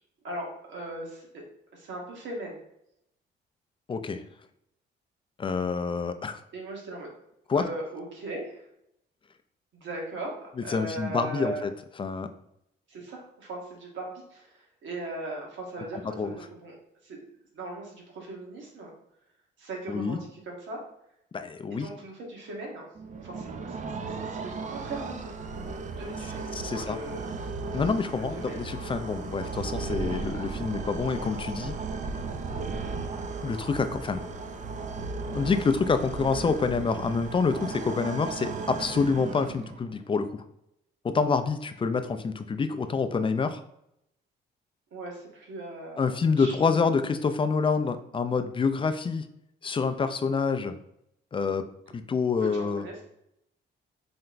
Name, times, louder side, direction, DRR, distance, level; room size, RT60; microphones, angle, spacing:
voice 1, 0.2-1.4 1.7-2.6 6.5-7.1 7.5-8.6 9.7-11.6 12.9-16.8 17.0-18.9 19.6-20.8 21.7-22.9 23.2-25.3 26.0-27.3 28.1-28.7 44.9-46.1 46.4-46.6 52.4-52.9, right 2 dB, 70° right, -1 dB, 1.5 m, -39 dB
voice 2, 3.9-4.2 5.4-6.4 7.5-7.6 10.7-11.7 12.0-12.3 16.2-16.3 19.9-20.2 21.3-21.9 26.5-27.0 27.7-31.7 33.4-34.2 35.3-40.4 41.0-43.6 46.0-49.3 49.6-50.8 51.3-51.7 51.9-52.8, left 5 dB, 25° left, 10 dB, 0.4 m, -27 dB
sound 1, 22.9-39.9, right 4 dB, 40° right, 0.5 m, -35 dB
4.3 x 2.2 x 3.9 m, 0.78 s
cardioid pair, 90°, 20 cm